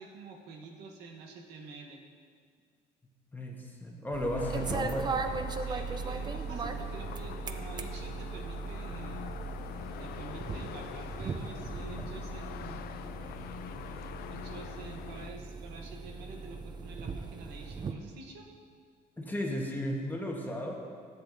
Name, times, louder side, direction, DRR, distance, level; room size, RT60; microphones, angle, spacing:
voice 1, 0.0-2.0 5.6-9.3 10.0-12.9 14.3-18.5, right 4 dB, 90° right, 1 dB, 0.9 m, -47 dB
voice 2, 3.3-5.1 19.2-20.7, equal, 10° left, 0 dB, 1.1 m, -34 dB
sound 1, 4.1-17.9, right 4 dB, 25° right, 0.4 m, -38 dB
sound 2, 4.4-15.3, left 9 dB, 65° left, 0.4 m, -44 dB
10.0 x 7.8 x 2.6 m, 2.1 s
cardioid pair, 110°, 17 cm